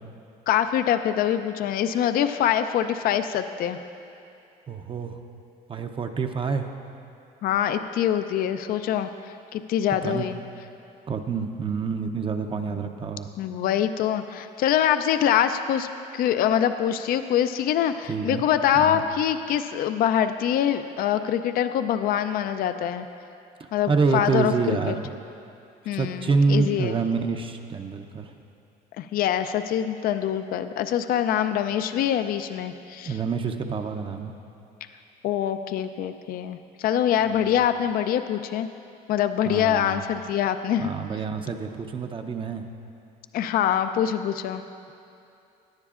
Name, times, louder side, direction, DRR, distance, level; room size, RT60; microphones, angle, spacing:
voice 1, 0.5-3.8 7.4-10.4 12.6-12.8 13.4-15.9 16.1-23.1 23.7-25.0 25.9-26.9 29.0-33.2 35.2-38.7 39.1-40.9 43.3-44.6, left 10 dB, 60° left, 10 dB, 0.4 m, -24 dB
voice 2, 4.7-5.2 5.7-6.7 9.9-10.3 11.1-13.3 18.1-18.4 18.8-19.0 23.6-25.1 25.9-28.3 33.1-34.3 39.5-40.0 40.8-42.6, right 5 dB, 30° right, 5 dB, 0.5 m, -27 dB
17.0 x 10.0 x 2.5 m, 2.6 s
cardioid pair, 110°, 17 cm